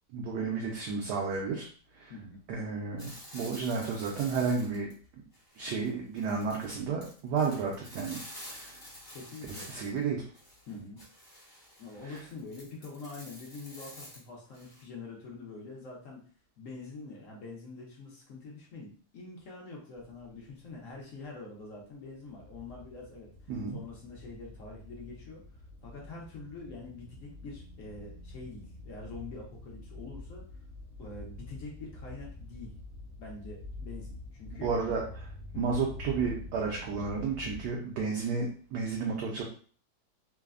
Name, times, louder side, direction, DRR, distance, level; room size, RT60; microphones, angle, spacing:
voice 1, 0.1-1.7 1.9-2.1 2.5-4.9 5.6-8.2 8.5-8.8 9.5-10.2 12.0-12.2 23.5-23.8 34.6-35.0 35.6-39.4, right 5 dB, 75° right, -1 dB, 0.9 m, -32 dB
sound 1, 3.0-5.0 5.3-10.0 10.3-14.8, equal, 25° left, 0.4 m, -49 dB
voice 2, 9.1-9.7 10.7-11.0 11.8-16.2 16.6-23.3 23.7-25.4 25.8-30.4 31.0-32.7 33.2-34.9 35.5-35.6, left 3 dB, 70° left, -3 dB, 0.7 m, -45 dB
sound 2, 20.0-37.7, left 2 dB, 55° right, 0.6 m, -46 dB
3.2 x 2.0 x 2.3 m, 0.43 s
omnidirectional pair, 2.2 m